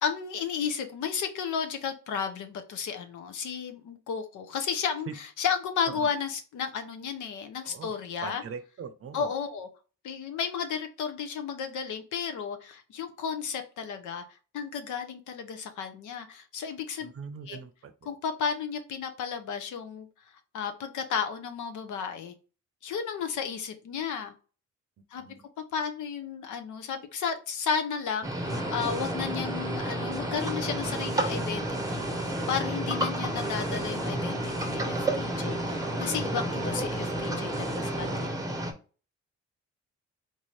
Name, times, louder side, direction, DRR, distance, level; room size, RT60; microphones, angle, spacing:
voice 1, 0.0-8.4 9.1-9.7 10.0-14.2 14.5-17.1 17.5-17.6 18.0-20.1 20.5-22.3 22.8-24.3 25.1-25.2 25.7-38.4, left 6 dB, 80° left, 0.8 m, -33 dB
voice 2, 8.2-9.3 17.0-17.9 25.2-25.4, right 6 dB, 50° right, 0.6 m, -41 dB
sound 1, 28.2-38.7, right 1 dB, 10° right, 0.8 m, -32 dB
sound 2, 28.4-38.3, right 1 dB, 15° left, 1.1 m, -37 dB
3.9 x 2.6 x 3.2 m
cardioid pair, 90°, 30 cm